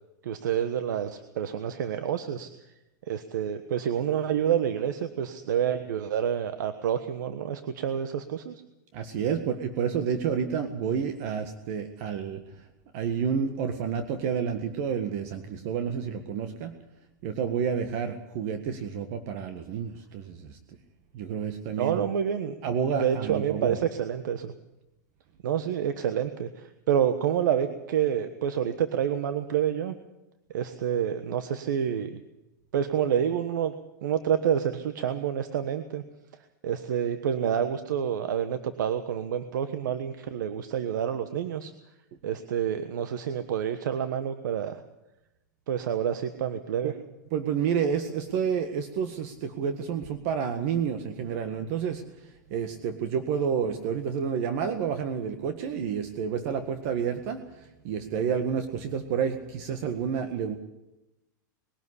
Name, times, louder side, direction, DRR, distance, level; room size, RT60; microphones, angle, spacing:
voice 1, 0.2-2.5 3.1-8.5 21.8-22.5 23.0-24.5 25.4-29.9 30.5-32.2 32.7-33.7 34.0-36.0 36.6-41.7 42.2-44.8 45.7-46.9, right 9 dB, 80° right, 10 dB, 1.3 m, -28 dB
voice 2, 8.9-12.4 12.9-16.8 17.2-20.6 21.1-22.0 22.6-23.8 46.8-46.9 47.3-52.0 52.5-57.4 57.8-60.6, right 7 dB, 50° right, 7 dB, 1.7 m, -29 dB
21.0 x 12.5 x 9.9 m, 0.96 s
supercardioid pair, 145°, 10 cm